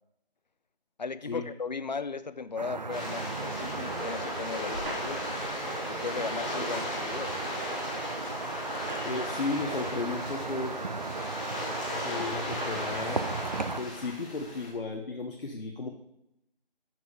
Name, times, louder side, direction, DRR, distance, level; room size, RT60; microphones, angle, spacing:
voice 1, 1.0-5.2 5.9-7.4, left 4 dB, 50° left, 14 dB, 0.5 m, -37 dB
sound 1, 2.6-13.8, right 3 dB, 45° right, 0.6 m, -36 dB
sound 2, 2.9-14.7, left 1 dB, 10° left, 0.9 m, -37 dB
sound 3, 4.7-5.5 7.2-7.3 8.6-9.5 10.4-10.5 11.5-11.6 12.5-13.0, right 1 dB, 65° right, 3.6 m, -43 dB
voice 2, 9.0-10.8 12.0-13.2 13.8-15.9, left 3 dB, 65° left, 3 dB, 1.2 m, -34 dB
14.0 x 4.7 x 4.8 m, 0.82 s
figure-of-eight pair, 170°, 30 cm